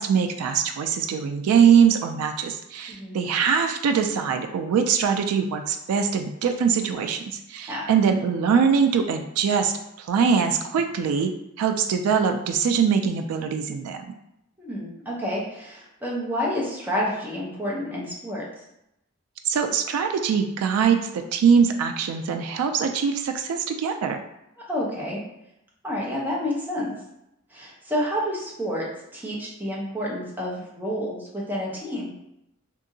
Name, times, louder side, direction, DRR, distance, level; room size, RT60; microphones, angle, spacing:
voice 1, 0.0-14.1 19.5-24.2, right 6 dB, 90° right, 9 dB, 0.3 m, -22 dB
voice 2, 14.6-18.4 24.7-25.2 25.8-26.9 27.5-28.8 29.1-32.1, equal, 10° right, -5 dB, 0.7 m, -29 dB
2.7 x 2.6 x 2.6 m, 0.82 s
head